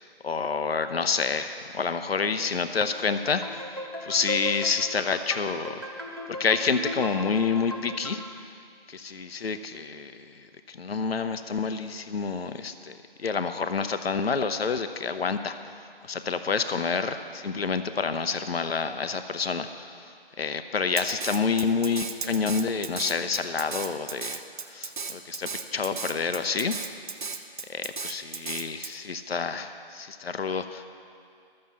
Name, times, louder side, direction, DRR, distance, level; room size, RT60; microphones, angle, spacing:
voice 1, 0.2-3.6 4.0-5.9 6.3-8.2 8.9-12.9 13.2-15.6 16.0-19.9 20.4-24.4 24.7-26.8 27.7-30.9, left 5 dB, 80° left, 9 dB, 0.7 m, -28 dB
sound 1, 2.9-8.4, left 1 dB, 25° right, 0.4 m, -38 dB
Drum kit, 21.0-28.9, right 5 dB, 55° right, 0.8 m, -35 dB
13.0 x 7.7 x 7.0 m, 2.3 s
figure-of-eight pair, 165°, 30 cm